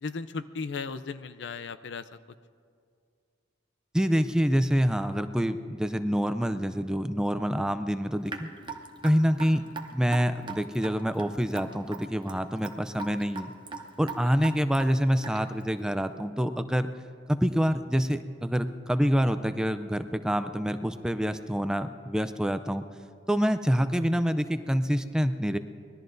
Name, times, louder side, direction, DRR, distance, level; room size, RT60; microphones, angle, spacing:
voice 1, 0.0-2.2, left 4 dB, 70° left, 12 dB, 0.5 m, -36 dB
voice 2, 3.9-8.5 9.0-9.6 9.9-13.5 14.0-16.9 17.3-22.9 23.3-25.6, equal, 5° right, 10 dB, 0.4 m, -26 dB
Raindrop / Drip, 8.3-15.6, right 4 dB, 25° right, 0.9 m, -40 dB
25.0 x 19.5 x 2.6 m, 2.3 s
head